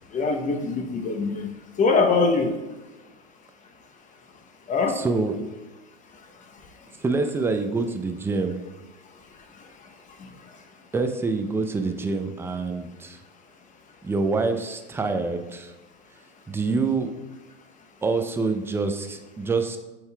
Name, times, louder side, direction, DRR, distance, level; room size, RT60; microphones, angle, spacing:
voice 1, 0.1-1.5 1.8-2.6 4.7-5.0 10.2-10.3, left 4 dB, 25° left, 5 dB, 0.8 m, -23 dB
voice 2, 4.9-5.4 7.0-8.6 10.9-13.2 14.0-15.8 16.5-17.1 18.0-19.8, right 3 dB, 10° right, 6 dB, 0.4 m, -26 dB
7.9 x 5.5 x 2.3 m, 1.1 s
hypercardioid pair, 95°, 30 cm